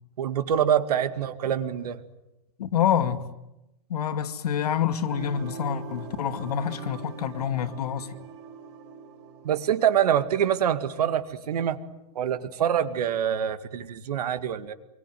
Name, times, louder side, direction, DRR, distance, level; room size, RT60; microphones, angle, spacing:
voice 1, 0.2-2.0 9.4-11.8 12.2-14.7, right 9 dB, 85° right, 2.2 m, -25 dB
voice 2, 2.6-3.2 3.9-8.1, left 8 dB, 90° left, 2.3 m, -27 dB
sound 1, 5.1-10.9, right 6 dB, 45° right, 3.0 m, -43 dB
27.5 x 23.0 x 9.4 m
supercardioid pair, 170°, 19 cm